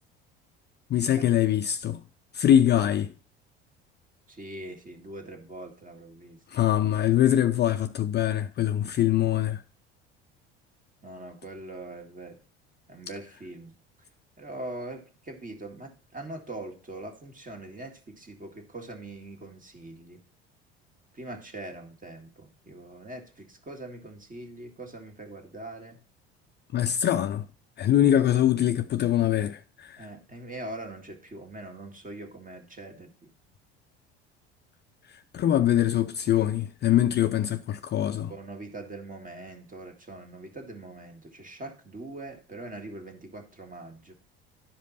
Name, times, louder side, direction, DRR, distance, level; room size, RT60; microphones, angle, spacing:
voice 1, 0.9-2.0 2.3-3.1 6.5-9.6 26.7-27.5 27.8-30.1 35.1-38.3, left 11 dB, 35° left, 0.5 m, -23 dB
voice 2, 4.3-6.4 11.0-12.4 12.9-13.7 14.4-20.2 21.1-26.0 30.0-33.3 37.0-37.1 38.3-44.1, right 2 dB, 25° right, 2.0 m, -42 dB
11.5 x 5.1 x 4.1 m
hypercardioid pair, 65°, 31 cm